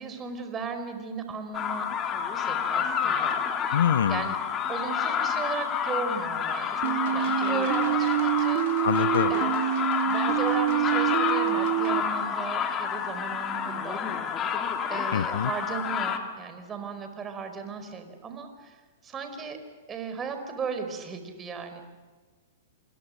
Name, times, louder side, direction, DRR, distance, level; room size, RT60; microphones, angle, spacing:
voice 1, 0.0-1.9 2.3-3.4 3.7-3.8 4.1-4.4 4.7-8.9 9.3-9.5 10.0-14.0 14.9-18.8 19.0-19.6 19.9-21.8, right 5 dB, 20° right, 7 dB, 4.8 m, -36 dB
sound 1, 1.5-16.2, left 7 dB, 30° left, 3.1 m, -29 dB
voice 2, 3.7-4.3 8.8-9.3 15.1-15.5, left 8 dB, 75° left, 19 dB, 0.7 m, -25 dB
sound 2, 6.8-12.0, right 13 dB, 55° right, 2.6 m, -26 dB
27.5 x 27.0 x 6.6 m, 1.4 s
hypercardioid pair, 110°, 0 cm